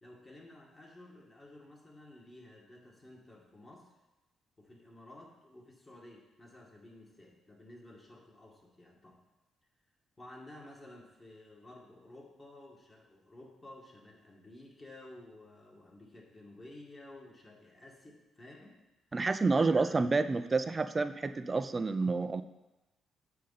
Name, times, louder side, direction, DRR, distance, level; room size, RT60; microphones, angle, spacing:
voice 1, 0.0-3.9 4.6-9.2 10.2-18.8 19.5-19.9, left 1 dB, 25° left, -2 dB, 2.1 m, -53 dB
voice 2, 19.1-22.4, right 3 dB, 30° right, 11 dB, 0.5 m, -29 dB
8.4 x 6.4 x 4.2 m, 1.0 s
cardioid pair, 90°, 0 cm